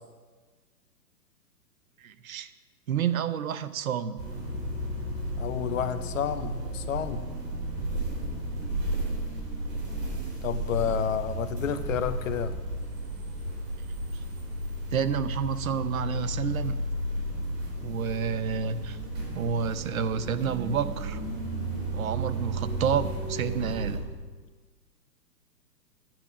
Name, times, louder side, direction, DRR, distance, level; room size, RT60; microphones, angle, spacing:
voice 1, 2.0-2.5 2.9-4.2 14.9-16.8 17.8-19.0 19.3-21.2 21.9-24.0, right 7 dB, 55° right, 12 dB, 0.8 m, -29 dB
sound 1, 4.2-24.0, right 1 dB, 40° right, 4.6 m, -33 dB
voice 2, 5.4-7.3 10.4-12.5, left 8 dB, 50° left, 11 dB, 1.0 m, -30 dB
12.0 x 9.1 x 6.1 m, 1.4 s
hypercardioid pair, 130°, 50 cm